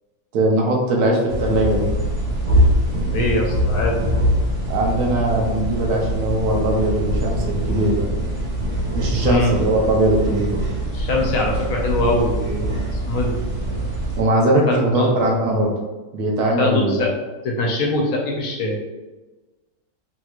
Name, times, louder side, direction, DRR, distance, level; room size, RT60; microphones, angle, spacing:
voice 1, 0.3-1.9 4.7-8.1 8.9-10.6 14.2-15.7 16.1-17.1, right 1 dB, 90° right, 0 dB, 1.2 m, -20 dB
sound 1, 1.3-14.2, equal, 55° right, 1.3 m, -23 dB
voice 2, 3.1-4.0 9.2-9.5 10.9-13.4 14.7-15.1 16.6-17.1 17.4-18.8, left 2 dB, 70° left, -1 dB, 1.1 m, -22 dB
3.4 x 2.9 x 2.4 m, 1.2 s
omnidirectional pair, 1.6 m